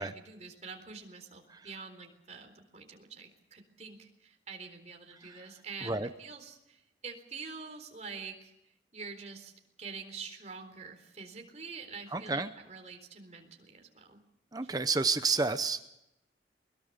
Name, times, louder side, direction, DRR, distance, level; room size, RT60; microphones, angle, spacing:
voice 1, 0.0-8.5 8.9-9.5 9.8-14.2 14.6-14.7, right 5 dB, 40° right, 4 dB, 4.0 m, -46 dB
voice 2, 12.1-12.5 14.5-15.9, right 4 dB, 20° right, 10 dB, 0.8 m, -31 dB
22.0 x 22.0 x 6.7 m, 0.86 s
head